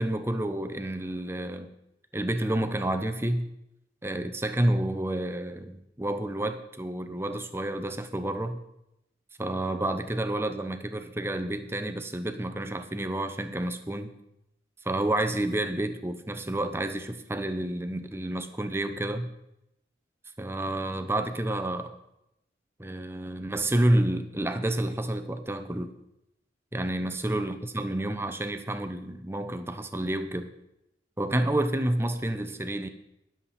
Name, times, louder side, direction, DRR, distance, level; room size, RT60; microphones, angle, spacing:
voice 1, 0.0-1.7 2.1-3.5 4.0-8.6 9.4-14.1 14.8-19.3 20.4-21.9 22.8-25.9 26.7-30.5 31.2-32.9, right 1 dB, 15° right, 9 dB, 0.8 m, -29 dB
20.5 x 7.6 x 4.3 m, 0.86 s
head